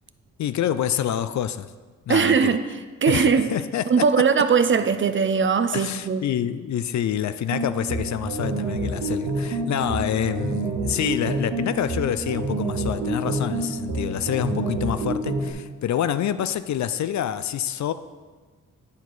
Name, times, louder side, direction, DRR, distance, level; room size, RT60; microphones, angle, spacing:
voice 1, 0.4-1.7 2.1-2.5 3.1-4.0 5.7-17.9, left 10 dB, 60° left, 12 dB, 0.5 m, -27 dB
voice 2, 2.1-2.6 3.0-3.5 3.9-6.2, right 6 dB, 35° right, 10 dB, 0.5 m, -20 dB
sound 1, 7.5-15.5, right 2 dB, 75° right, 1.3 m, -28 dB
9.6 x 4.6 x 4.0 m, 1.4 s
cardioid pair, 60°, 32 cm